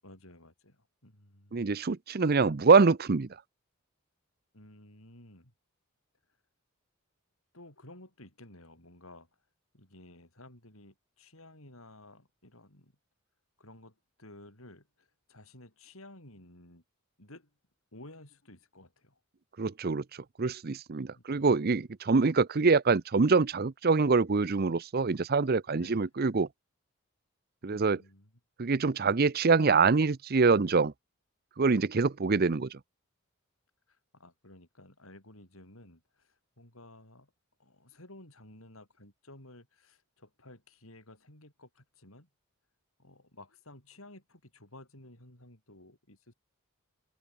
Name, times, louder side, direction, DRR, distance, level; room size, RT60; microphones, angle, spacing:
voice 1, 0.0-1.8 4.5-5.5 7.5-9.3 9.7-12.9 13.6-16.8 17.2-17.5 17.9-19.2 21.1-21.5 25.7-26.1 27.6-28.3 33.9-37.3 37.6-42.3 43.0-46.3, left 1 dB, 75° left, 7.9 m, -54 dB
voice 2, 1.5-3.3 19.6-20.0 20.4-26.5 27.6-28.0 28.6-30.9 31.6-32.8, right 4 dB, 45° right, 0.6 m, -25 dB
head